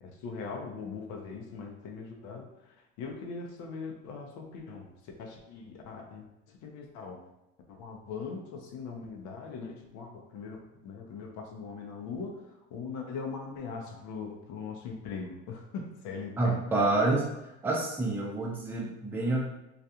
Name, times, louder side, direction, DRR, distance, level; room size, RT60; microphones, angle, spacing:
voice 1, 0.0-4.9 5.2-7.2 7.7-12.4 12.7-16.6, left 5 dB, 60° left, 2 dB, 0.7 m, -40 dB
voice 2, 16.4-17.3 17.6-19.4, right 2 dB, 5° right, -2 dB, 0.5 m, -28 dB
2.3 x 2.3 x 2.7 m, 0.91 s
supercardioid pair, 85°, 33 cm